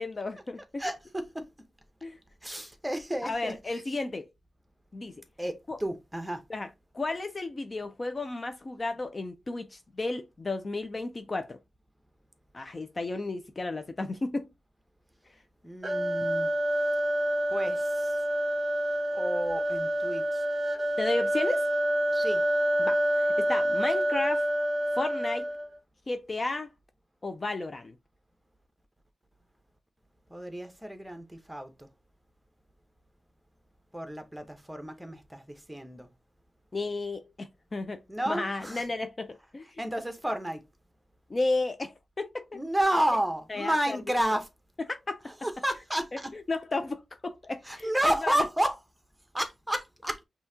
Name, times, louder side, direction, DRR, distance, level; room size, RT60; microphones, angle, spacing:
voice 1, 0.0-0.8 2.0-2.2 3.2-4.3 4.9-5.1 5.7-5.8 6.5-6.7 6.9-11.6 12.5-14.5 21.0-21.7 22.8-24.4 25.0-25.5 26.1-26.7 27.2-27.9 36.7-38.0 38.3-39.8 41.3-42.6 43.5-44.2 44.9-45.2 46.3-48.4, left 2 dB, 35° left, 0.4 m, -33 dB
voice 2, 0.8-1.4 2.4-3.8 5.4-6.4 15.6-16.5 17.5-18.1 19.1-20.4 22.1-22.4 30.3-31.9 33.9-36.1 38.1-38.8 39.8-40.6 42.5-44.5 45.4-46.3 47.6-48.8 49.3-50.2, right 1 dB, 5° right, 0.9 m, -31 dB
sound 1, 15.8-25.8, equal, 20° right, 1.2 m, -27 dB
5.5 x 2.8 x 2.7 m
wide cardioid pair, 90°, 0 cm